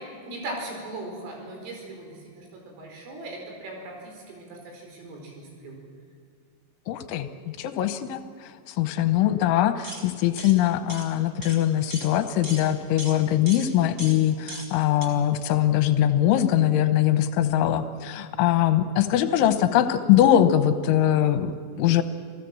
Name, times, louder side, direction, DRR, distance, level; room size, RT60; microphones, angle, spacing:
voice 1, 0.2-5.8, right 2 dB, 85° right, 1 dB, 7.2 m, -39 dB
voice 2, 6.9-21.5 21.8-22.0, left 11 dB, 85° left, 10 dB, 3.2 m, -22 dB
sound 1, 9.8-10.0 10.4-10.5 10.9-11.1 11.4-11.6 11.9-12.1 12.4-12.7 13.0-13.2 13.5-13.7 14.0-14.2 14.5-14.7 15.0-15.1, right 1 dB, 20° right, 1.7 m, -37 dB
27.5 x 17.0 x 7.7 m, 2.1 s
omnidirectional pair, 5.6 m